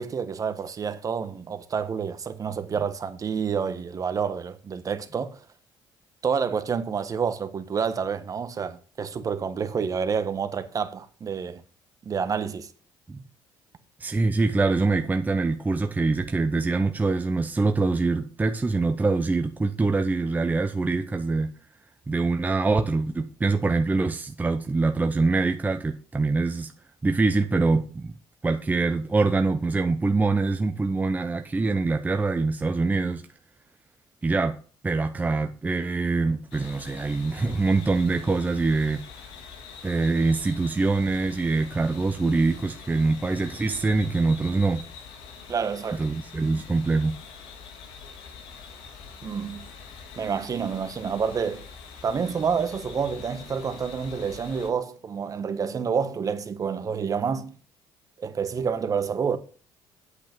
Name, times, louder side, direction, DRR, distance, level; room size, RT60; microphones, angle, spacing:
voice 1, 0.0-5.4 6.2-11.6 12.0-12.7 45.5-46.1 49.2-49.7 50.2-51.7 52.0-57.6 58.2-59.4, right 6 dB, 40° right, 1.3 m, -28 dB
voice 2, 14.0-21.5 22.1-26.7 27.0-28.2 28.4-33.2 34.2-34.5 34.8-39.0 39.8-44.8 45.9-47.2, right 3 dB, 20° right, 0.9 m, -24 dB
sound 1, 36.5-54.7, left 6 dB, 80° left, 2.3 m, -44 dB
8.4 x 8.4 x 5.3 m
cardioid pair, 90°, 9 cm